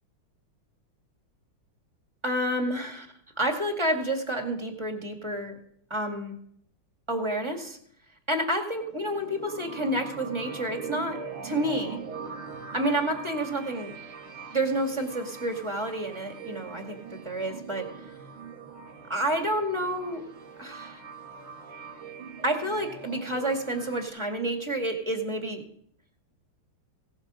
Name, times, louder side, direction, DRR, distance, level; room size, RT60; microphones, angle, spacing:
voice 1, 2.2-3.1 3.4-5.6 5.9-6.3 7.1-7.8 8.3-11.2 11.4-12.0 12.7-13.9 14.5-17.9 19.1-20.2 20.6-21.0 22.4-25.6, right 1 dB, 15° right, 3 dB, 1.9 m, -29 dB
sound 1, 8.7-24.1, right 5 dB, 75° right, 2.3 m, -42 dB
17.0 x 8.9 x 6.3 m, 0.66 s
omnidirectional pair, 2.4 m